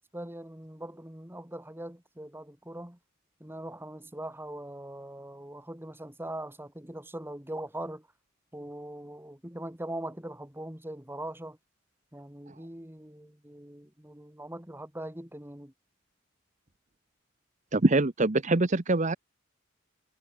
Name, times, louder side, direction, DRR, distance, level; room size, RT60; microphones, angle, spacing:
voice 1, 0.1-3.0 3.4-8.1 8.5-11.6 12.1-15.7, right 1 dB, 10° right, 2.3 m, -41 dB
voice 2, 17.7-19.1, right 2 dB, 40° right, 1.0 m, -24 dB
head